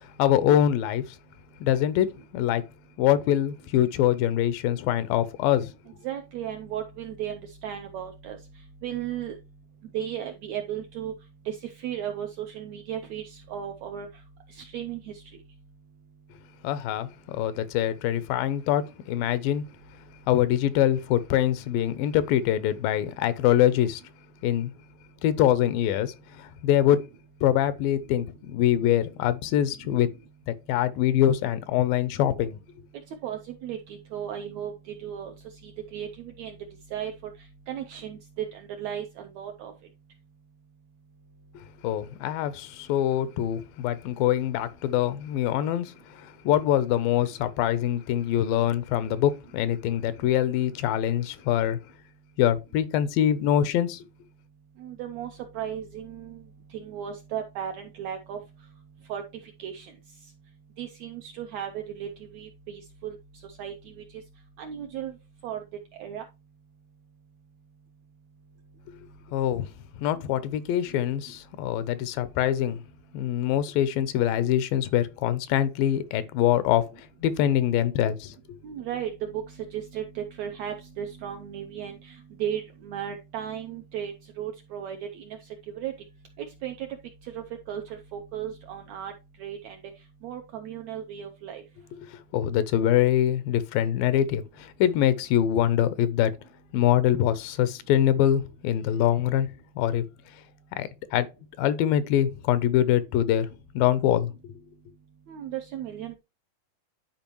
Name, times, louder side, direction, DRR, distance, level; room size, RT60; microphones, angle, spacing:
voice 1, 0.2-1.1 1.6-2.1 2.3-2.6 3.0-5.7 16.6-19.6 20.3-24.0 24.4-24.7 25.2-27.0 27.4-30.1 30.5-32.6 41.8-51.8 52.4-54.1 69.3-69.7 70.0-72.8 73.1-78.3 92.3-96.3 96.7-99.5 99.8-100.0 100.8-101.3 101.6-103.5 103.7-104.5, left 11 dB, 85° left, 2.5 m, -24 dB
voice 2, 6.0-8.4 8.8-9.3 9.9-11.1 11.4-14.1 14.5-15.2 33.2-34.7 35.0-35.3 35.6-36.6 36.9-37.3 37.7-39.7 54.8-56.4 56.7-58.4 59.1-59.2 59.6-59.9 60.8-63.2 63.4-64.0 64.6-65.1 65.4-65.6 66.0-66.2 78.6-85.4 85.7-85.9 86.6-86.9 87.2-89.1 89.4-89.8 90.2-91.6 105.3-106.1, right 9 dB, 80° right, 1.6 m, -35 dB
11.0 x 4.5 x 3.0 m
omnidirectional pair, 3.9 m